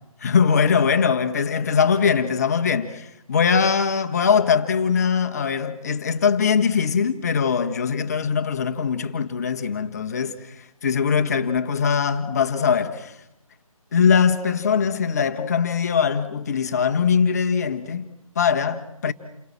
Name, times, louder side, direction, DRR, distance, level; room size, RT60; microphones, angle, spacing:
voice 1, 0.2-13.2 13.9-19.1, left 6 dB, 30° left, 1.5 m, -21 dB
29.5 x 23.0 x 7.5 m
figure-of-eight pair, 155°, 18 cm